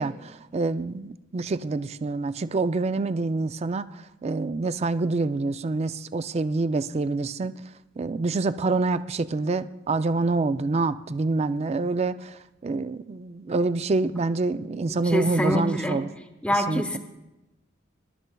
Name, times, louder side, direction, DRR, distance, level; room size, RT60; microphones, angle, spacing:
voice 1, 0.0-3.9 4.2-7.5 8.0-12.4 12.6-16.1 16.7-17.0, right 3 dB, 35° right, 12 dB, 0.4 m, -26 dB
voice 2, 15.0-16.0 16.4-17.0, equal, 5° left, 5 dB, 1.1 m, -25 dB
24.5 x 12.0 x 2.3 m, 0.97 s
head